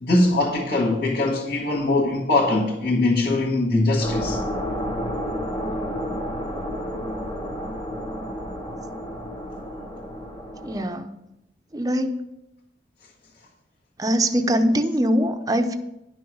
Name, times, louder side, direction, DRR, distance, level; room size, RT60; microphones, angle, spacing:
voice 1, 0.0-4.4, left 2 dB, 65° left, 1.8 m, -21 dB
sound 1, 4.0-10.8, equal, 30° left, 1.5 m, -30 dB
voice 2, 10.6-11.1 11.7-12.2 14.0-15.8, equal, 20° right, 0.6 m, -22 dB
10.5 x 6.1 x 6.2 m
head